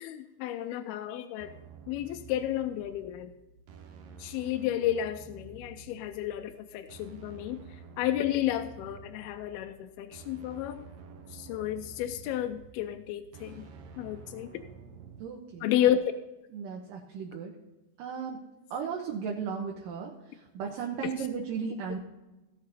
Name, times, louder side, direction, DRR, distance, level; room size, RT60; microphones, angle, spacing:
voice 1, 0.0-1.5 1.9-3.3 4.2-7.6 8.0-10.9 11.3-13.7 14.0-14.5 15.6-16.1, left 11 dB, 80° left, 6 dB, 2.5 m, -31 dB
sound 1, 1.4-15.2, right 5 dB, 90° right, 1.3 m, -50 dB
voice 2, 15.2-15.7 16.5-17.5 18.0-18.4 18.7-22.0, right 6 dB, 70° right, 0 dB, 2.5 m, -35 dB
16.5 x 6.6 x 4.0 m, 1.0 s
omnidirectional pair, 4.5 m